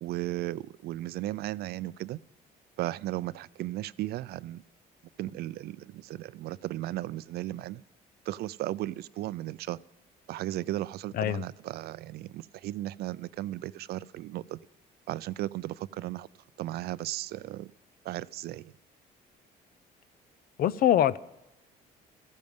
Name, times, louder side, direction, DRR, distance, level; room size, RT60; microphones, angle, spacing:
voice 1, 0.0-2.2 2.8-4.6 5.2-7.8 8.3-9.8 10.3-14.6 15.1-16.3 16.6-17.7 18.0-18.7, right 15 dB, 70° right, 0.5 m, -35 dB
voice 2, 20.6-21.2, left 11 dB, 60° left, 0.6 m, -23 dB
16.0 x 14.0 x 5.4 m
cardioid pair, 110°, 17 cm